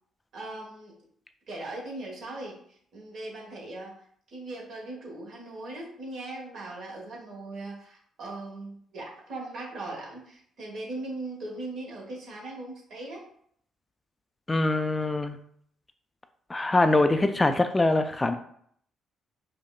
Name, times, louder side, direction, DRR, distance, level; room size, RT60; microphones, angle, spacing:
voice 1, 0.3-0.9 1.5-3.9 4.3-13.2, right 2 dB, 65° right, -2 dB, 1.2 m, -39 dB
voice 2, 14.5-15.4 16.5-18.4, left 2 dB, 20° left, 8 dB, 0.3 m, -23 dB
5.0 x 2.1 x 2.3 m, 0.64 s
hypercardioid pair, 45°, 0 cm